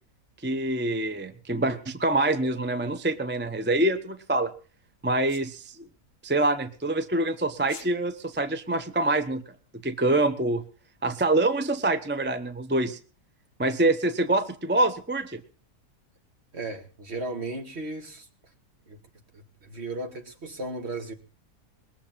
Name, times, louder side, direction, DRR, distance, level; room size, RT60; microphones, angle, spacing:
voice 1, 0.4-4.5 5.0-5.8 6.2-9.4 9.8-10.6 11.0-13.0 13.6-15.4, right 2 dB, 10° right, 0.5 m, -25 dB
Sneeze, 5.3-5.5 7.6-7.9, left 5 dB, 50° left, 1.6 m, -43 dB
voice 2, 16.5-18.3 18.9-19.0 19.3-21.1, right 2 dB, 45° right, 2.1 m, -35 dB
20.5 x 7.2 x 7.2 m
omnidirectional pair, 1.6 m